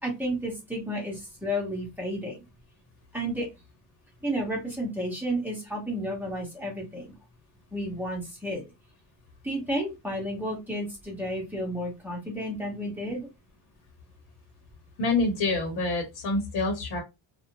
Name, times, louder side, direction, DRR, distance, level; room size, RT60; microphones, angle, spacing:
voice 1, 0.0-2.4 3.1-3.5 4.2-7.1 7.7-8.6 9.4-13.3, equal, 5° right, -2 dB, 0.9 m, -32 dB
voice 2, 15.0-17.0, left 3 dB, 50° left, 1 dB, 1.0 m, -26 dB
2.5 x 2.0 x 2.9 m, 0.23 s
cardioid pair, 140°, 50 cm